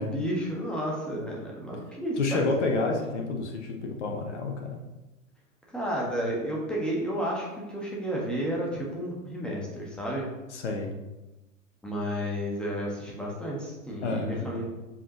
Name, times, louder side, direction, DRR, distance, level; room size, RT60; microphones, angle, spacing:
voice 1, 0.0-2.9 5.7-10.3 11.8-14.6, equal, ahead, -3 dB, 1.4 m, -32 dB
voice 2, 2.2-4.8 10.5-10.9 14.0-14.6, left 3 dB, 55° left, 2 dB, 1.1 m, -29 dB
7.4 x 5.0 x 3.0 m, 1.1 s
figure-of-eight pair, 100°, 41 cm